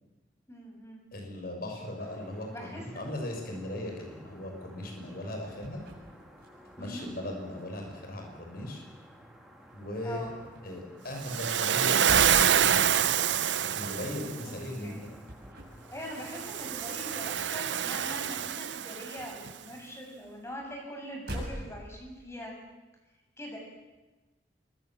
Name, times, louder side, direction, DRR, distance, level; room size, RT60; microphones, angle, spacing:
voice 1, 0.5-1.0 2.5-3.1 6.8-7.1 10.0-10.3 14.8-15.0 15.9-22.5 23.4-23.6, equal, 15° left, 1 dB, 7.1 m, -42 dB
voice 2, 1.1-5.8 6.8-8.8 9.7-10.3 10.6-13.1 13.6-15.1, left 1 dB, 55° left, 2 dB, 6.4 m, -38 dB
sound 1, 2.0-18.5, equal, ahead, 3.7 m, -53 dB
sound 2, 5.1-7.1 7.4-9.3 9.6-18.3 18.5-22.3, equal, 60° right, 7.3 m, -45 dB
Waves surf, 11.2-14.4 16.2-19.3, right 9 dB, 85° right, 0.8 m, -27 dB
27.0 x 23.0 x 7.5 m, 1.2 s
head